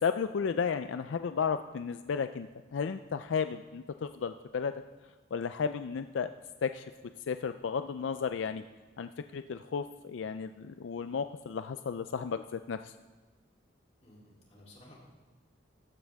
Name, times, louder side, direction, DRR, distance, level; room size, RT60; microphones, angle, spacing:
voice 1, 0.0-4.7 5.3-6.3 6.6-6.9 7.3-8.6 9.0-12.9, left 6 dB, 80° left, 10 dB, 0.4 m, -33 dB
voice 2, 14.0-14.9, left 1 dB, 35° left, -4 dB, 3.2 m, -55 dB
14.5 x 11.5 x 3.5 m, 1.3 s
head